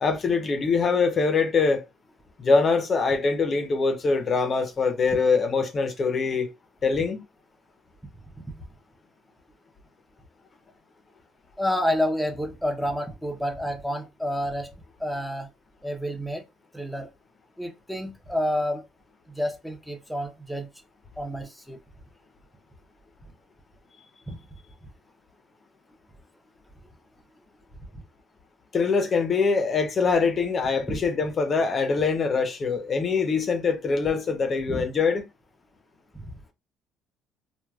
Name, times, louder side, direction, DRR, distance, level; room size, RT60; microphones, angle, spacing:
voice 1, 0.0-1.8 2.4-6.5 6.8-7.2 28.7-35.2, left 4 dB, 40° left, 0.6 m, -23 dB
voice 2, 11.6-14.7 15.0-15.5 15.8-16.4 16.7-17.1 17.6-18.9 19.3-20.7 21.2-21.8 24.3-24.4 30.9-31.0 34.7-34.8 36.1-36.3, equal, ahead, 0.6 m, -29 dB
3.2 x 2.2 x 2.3 m
supercardioid pair, 80°, 0 cm